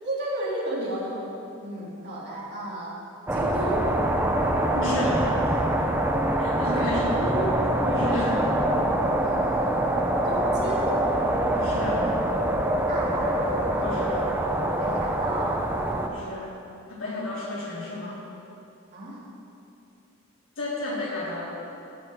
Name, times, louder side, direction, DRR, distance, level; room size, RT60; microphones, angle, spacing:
voice 1, 0.0-1.3 1.6-3.0 3.3-3.9 6.7-7.5 9.2-11.0 12.9-13.6 14.8-15.6 18.9-19.2, right 1 dB, 55° right, -7 dB, 3.5 m, -33 dB
sound 1, 3.3-16.1, right 1 dB, 10° right, 0.8 m, -24 dB
voice 2, 4.7-5.3 6.4-7.2 7.9-8.4 11.5-12.0 13.8-14.3 16.0-16.5 16.9-18.2 20.6-21.5, left 2 dB, 65° left, -6 dB, 3.6 m, -32 dB
14.0 x 5.6 x 9.1 m, 2.8 s
head